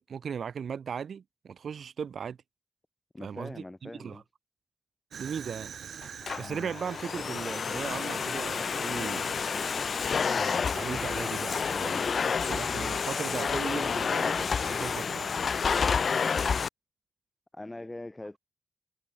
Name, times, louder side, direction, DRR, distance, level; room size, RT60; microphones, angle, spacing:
voice 1, 0.0-2.4 3.2-4.2 5.2-5.7 6.4-9.8 10.3-12.1 12.4-15.4, right 7 dB, 70° right, 3.3 m, -38 dB
voice 2, 3.1-4.2 17.5-18.4, left 2 dB, 15° left, 3.0 m, -42 dB
Fire, 5.1-12.7, right 7 dB, 90° right, 2.3 m, -48 dB
Domestic sounds home sounds, 6.0-16.7, left 6 dB, 55° left, 0.5 m, -29 dB
wide cardioid pair, 160°, 0 cm